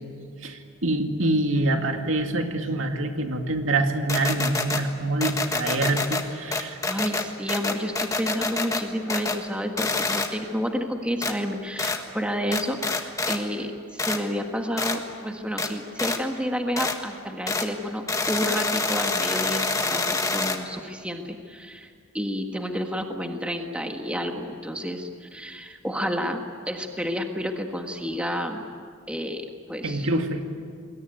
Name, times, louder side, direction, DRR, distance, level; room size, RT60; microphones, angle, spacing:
voice 1, 0.4-6.8 29.8-30.4, right 2 dB, 65° right, 4 dB, 2.4 m, -25 dB
sound 1, 4.1-4.8 5.2-6.2 6.5-8.8 9.1-9.4 9.8-10.3 11.2-11.3 11.8-12.0 12.5-13.4 14.0-14.2 14.8-15.0 15.6-15.7 16.0-16.2 16.8-17.0 17.5-17.7 18.1-20.6, left 3 dB, 15° left, 1.6 m, -26 dB
voice 2, 6.8-21.9 22.1-28.6 29.1-30.1, equal, 5° right, 3 dB, 1.6 m, -30 dB
28.0 x 21.5 x 9.5 m, 2.1 s
head